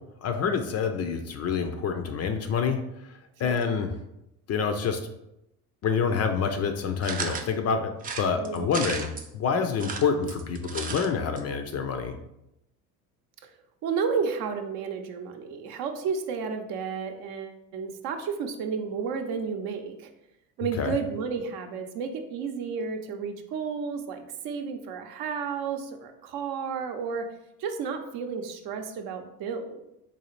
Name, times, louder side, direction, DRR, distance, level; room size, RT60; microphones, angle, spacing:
voice 1, 0.2-2.8 3.4-3.9 4.5-5.0 5.8-7.9 8.2-12.1 20.8-21.0, left 6 dB, 35° left, 7 dB, 0.4 m, -27 dB
sound 1, 7.0-7.5 8.0-9.3 9.7-11.1 11.4-11.5 11.7-11.8, right 5 dB, 20° right, 0.4 m, -34 dB
voice 2, 8.4-9.0 13.8-20.1 20.6-27.2 27.6-29.8, right 6 dB, 55° right, 5 dB, 0.7 m, -32 dB
4.0 x 2.4 x 3.1 m, 0.85 s
hypercardioid pair, 70°, 44 cm